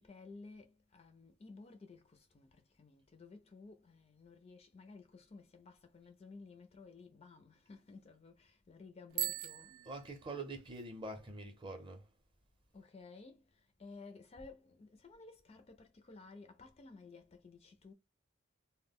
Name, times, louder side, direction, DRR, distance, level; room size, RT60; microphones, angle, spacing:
voice 1, 0.0-9.8 12.7-17.9, left 3 dB, 30° left, 0.3 m, -55 dB
Bicycle bell, 9.1-10.8, right 13 dB, 85° right, 0.4 m, -41 dB
voice 2, 9.8-12.1, right 2 dB, 25° right, 0.5 m, -45 dB
2.1 x 2.1 x 3.5 m
head